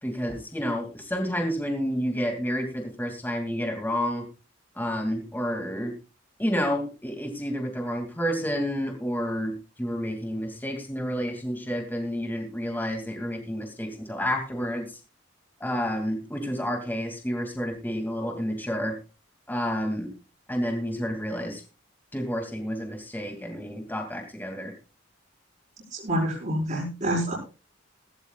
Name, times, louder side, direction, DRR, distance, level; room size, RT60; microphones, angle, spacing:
voice 1, 0.0-4.3 4.8-5.9 6.4-14.9 15.6-19.0 19.5-20.1 20.5-21.6 22.1-24.7, equal, 10° left, 3 dB, 2.7 m, -30 dB
voice 2, 25.9-27.3, equal, 40° right, -5 dB, 5.5 m, -27 dB
16.5 x 16.5 x 2.5 m, 0.33 s
head